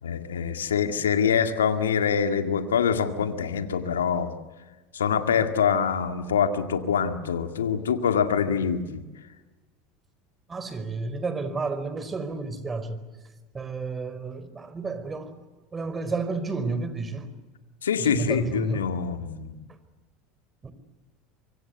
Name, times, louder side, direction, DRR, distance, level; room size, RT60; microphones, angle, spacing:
voice 1, 0.0-4.3 4.9-9.0 17.8-19.6, left 7 dB, 85° left, 8 dB, 2.1 m, -25 dB
voice 2, 10.5-13.0 13.5-15.4 15.7-17.3 18.0-18.9 20.6-20.7, right 3 dB, 25° right, 12 dB, 4.7 m, -31 dB
25.0 x 25.0 x 8.1 m, 1.2 s
hypercardioid pair, 80°, 0 cm